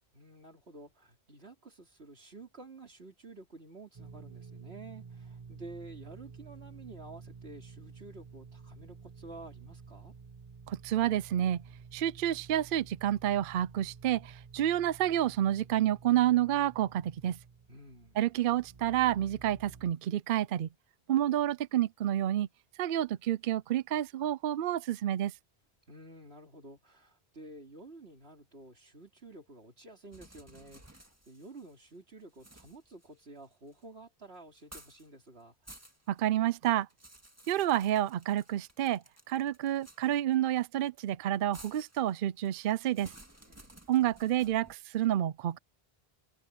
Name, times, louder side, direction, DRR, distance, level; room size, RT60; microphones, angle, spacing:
voice 1, 0.1-10.1 17.7-18.2 25.9-35.6 43.5-43.7, right 2 dB, 85° right, 3.6 m, -51 dB
sound 1, 3.9-19.9, right 5 dB, 35° right, 1.1 m, -51 dB
voice 2, 10.7-11.6 11.9-17.4 18.2-20.7 21.1-22.5 22.8-25.3 36.1-36.9 37.5-43.1 43.9-45.6, right 12 dB, 65° right, 0.7 m, -29 dB
sound 2, 30.1-31.9 32.3-33.8 34.5-35.1 35.4-36.2 36.6-40.3 41.5-44.7, right 1 dB, 15° right, 1.9 m, -55 dB
omnidirectional pair, 1.0 m